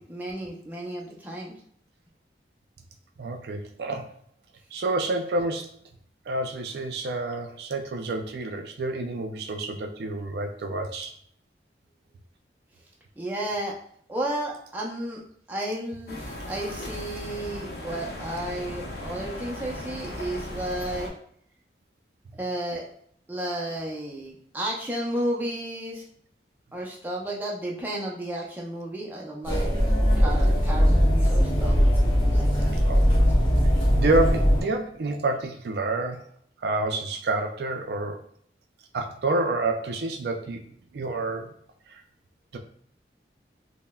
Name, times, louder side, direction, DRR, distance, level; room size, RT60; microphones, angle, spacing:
voice 1, 0.0-1.5 13.2-13.7 14.1-15.2 15.5-21.1 22.4-22.8 23.3-26.0 26.7-29.7 30.2-31.8 32.3-32.7, right 1 dB, 10° right, -3 dB, 0.5 m, -32 dB
voice 2, 3.2-4.1 4.7-5.7 6.3-11.1 32.8-33.0 33.9-36.2 36.6-38.2 38.9-40.6 40.9-41.5 41.9-42.0 42.5-42.6, right 2 dB, 70° right, 4 dB, 0.4 m, -28 dB
sound 1, 16.1-21.1, left 1 dB, 65° left, 0.7 m, -37 dB
sound 2, 29.4-34.6, equal, 30° left, 1.1 m, -20 dB
5.4 x 2.1 x 2.2 m, 0.62 s
head